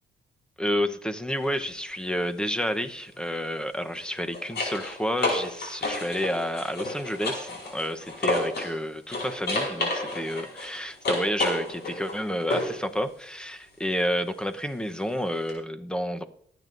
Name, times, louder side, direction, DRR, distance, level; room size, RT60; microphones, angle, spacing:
voice 1, 0.6-16.2, equal, 5° left, 8 dB, 0.9 m, -30 dB
sound 1, 1.3-1.5 3.8-8.8 9.1-12.8 15.5-15.6, left 2 dB, 60° left, 5.0 m, -31 dB
22.0 x 9.3 x 2.6 m, 0.64 s
cardioid pair, 90°, 20 cm